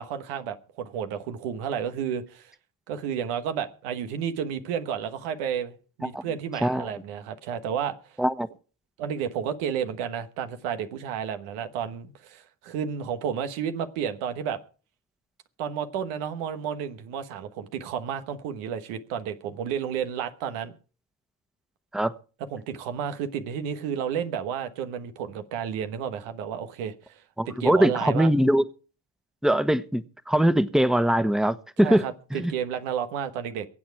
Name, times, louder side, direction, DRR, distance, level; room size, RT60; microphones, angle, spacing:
voice 1, 0.0-2.5 2.9-8.0 9.0-14.6 15.6-20.7 22.5-28.3 31.8-33.7, right 8 dB, 90° right, 1.3 m, -31 dB
voice 2, 27.4-28.6 29.4-32.0 32.3-32.5, right 1 dB, ahead, 1.2 m, -22 dB
23.0 x 8.6 x 4.7 m
hypercardioid pair, 40°, 50 cm